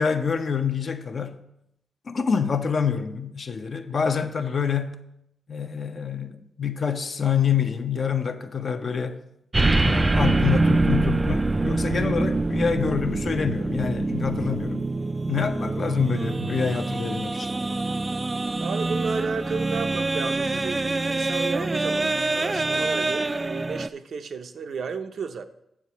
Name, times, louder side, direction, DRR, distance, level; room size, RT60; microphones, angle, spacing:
voice 1, 0.0-1.4 2.1-5.0 5.5-9.2 9.7-14.9 15.3-17.5, left 6 dB, 55° left, 0.7 m, -26 dB
sound 1, 9.5-23.9, right 2 dB, 25° right, 0.3 m, -25 dB
voice 2, 18.6-25.4, right 5 dB, 70° right, 0.6 m, -33 dB
7.5 x 4.7 x 7.0 m
cardioid pair, 100°, 0 cm